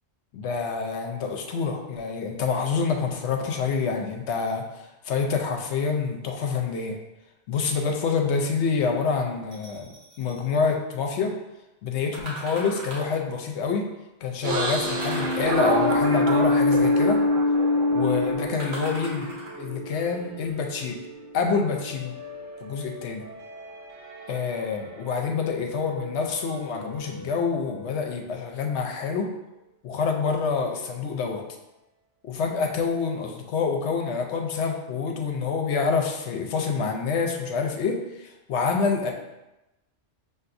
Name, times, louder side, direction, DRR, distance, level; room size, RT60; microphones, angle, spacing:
voice 1, 0.3-4.6 5.0-7.0 7.5-9.9 10.2-11.3 11.8-13.9 14.2-17.2 17.9-19.3 19.6-21.0 21.3-22.1 22.6-23.2 24.3-29.3 29.8-31.4 32.2-39.1, left 5 dB, 70° left, 3 dB, 0.8 m, -27 dB
sound 1, 9.5-10.5 12.1-13.2 14.9-16.0 18.6-19.8 20.4-20.5, right 1 dB, 45° right, 1.0 m, -39 dB
sound 2, 14.4-20.4 20.8-25.0 25.3-27.9, left 1 dB, 85° right, 1.0 m, -26 dB
5.6 x 2.6 x 2.5 m, 0.97 s
omnidirectional pair, 1.2 m